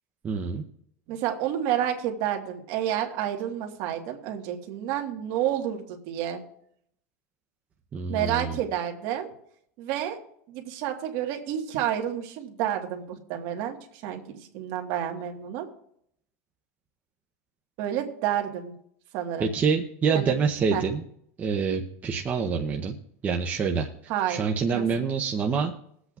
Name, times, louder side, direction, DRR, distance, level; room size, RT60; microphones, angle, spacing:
voice 1, 0.2-0.6 7.9-8.6 19.4-21.0 21.4-23.0 23.2-23.9 24.3-25.7, right 5 dB, 20° right, 2 dB, 0.7 m, -26 dB
voice 2, 1.1-6.4 8.1-9.3 9.8-10.2 10.5-15.7 17.8-18.7 19.1-19.5 20.1-20.3 20.7-20.8 24.1-24.4 24.7-24.8, right 10 dB, 50° right, 3 dB, 1.5 m, -30 dB
22.5 x 8.0 x 2.4 m, 0.68 s
supercardioid pair, 165°, 8 cm